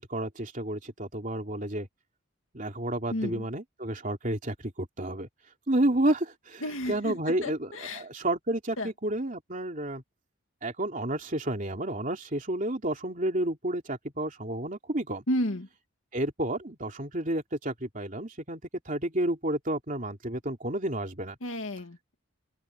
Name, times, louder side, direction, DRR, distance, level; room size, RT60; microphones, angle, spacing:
voice 1, 0.0-1.9 2.5-5.3 5.7-10.0 10.6-15.2 16.1-18.6 18.8-21.4, right 1 dB, 40° right, 3.2 m, -31 dB
voice 2, 3.1-3.4 6.6-8.0 8.8-8.9 15.3-15.7 21.4-22.2, left 1 dB, 75° left, 2.1 m, -32 dB
open air
head